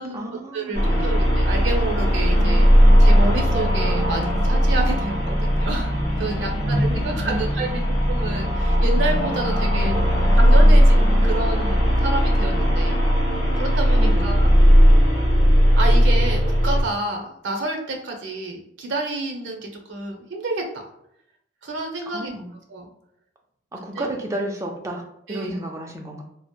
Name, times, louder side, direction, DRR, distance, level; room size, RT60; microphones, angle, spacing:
voice 1, 0.0-1.2 6.3-7.9 9.7-10.3 14.0-14.5 22.1-22.5 23.7-26.2, right 1 dB, 15° right, 1 dB, 0.3 m, -33 dB
voice 2, 0.5-2.7 3.0-7.8 8.1-10.0 10.4-13.0 13.5-14.6 15.8-20.9 21.6-22.3 22.7-22.9 23.9-24.1 25.3-25.5, right 2 dB, 75° right, 2 dB, 0.6 m, -29 dB
sound 1, 0.7-16.8, equal, 25° left, 1.0 m, -17 dB
2.7 x 2.1 x 2.3 m, 0.76 s
head